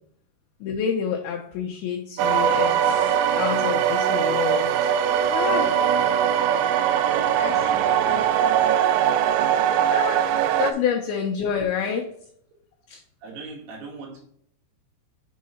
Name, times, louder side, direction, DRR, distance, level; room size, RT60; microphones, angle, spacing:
voice 1, 0.6-4.9 5.3-5.7 7.4-8.9 9.8-10.3 10.6-12.0 12.9-13.0, left 7 dB, 80° left, 1 dB, 2.3 m, -29 dB
sound 1, 2.2-10.7, right 9 dB, 90° right, 2.8 m, -21 dB
voice 2, 7.1-8.5 13.2-14.2, right 4 dB, 70° right, -3 dB, 3.8 m, -39 dB
7.4 x 3.8 x 4.2 m, 0.66 s
omnidirectional pair, 5.1 m